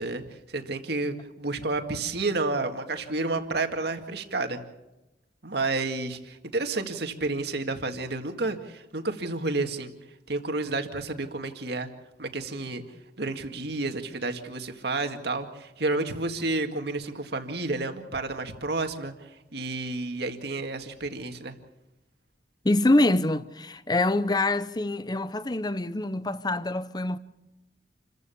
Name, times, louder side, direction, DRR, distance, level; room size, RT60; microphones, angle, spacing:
voice 1, 0.0-4.6 5.4-9.9 10.3-11.9 12.2-12.8 13.2-21.5, right 3 dB, 60° right, 2.0 m, -30 dB
voice 2, 22.6-27.2, left 2 dB, 25° left, 0.8 m, -25 dB
28.5 x 15.0 x 7.1 m
head